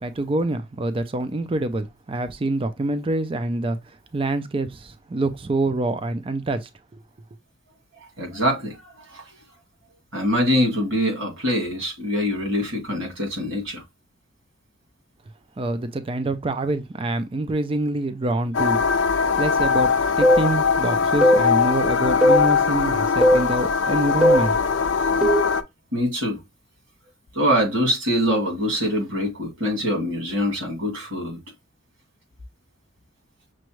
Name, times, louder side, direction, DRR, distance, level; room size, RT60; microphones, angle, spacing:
voice 1, 0.0-7.0 15.6-18.9 19.4-19.9 20.2-24.6, right 2 dB, 25° right, 0.4 m, -26 dB
voice 2, 8.2-9.2 10.1-13.8 25.9-26.4 27.3-31.4, equal, 85° right, 2.3 m, -24 dB
sound 1, 18.5-25.6, left 6 dB, 65° left, 0.5 m, -21 dB
sound 2, 20.2-20.5 21.2-21.5 22.2-22.5 23.2-23.5 24.2-24.5 25.2-25.5, equal, 5° right, 0.8 m, -17 dB
6.2 x 2.2 x 3.0 m
head